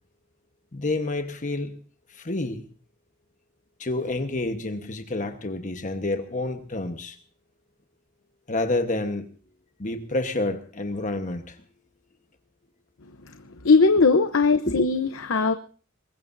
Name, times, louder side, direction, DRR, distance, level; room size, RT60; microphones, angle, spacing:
voice 1, 0.7-1.8 2.1-2.7 3.8-7.2 8.5-9.3 9.8-11.6 14.6-14.8, left 2 dB, 40° left, 6 dB, 1.2 m, -29 dB
voice 2, 13.6-15.5, left 4 dB, 90° left, 9 dB, 0.9 m, -19 dB
23.5 x 20.5 x 2.7 m, 0.40 s
head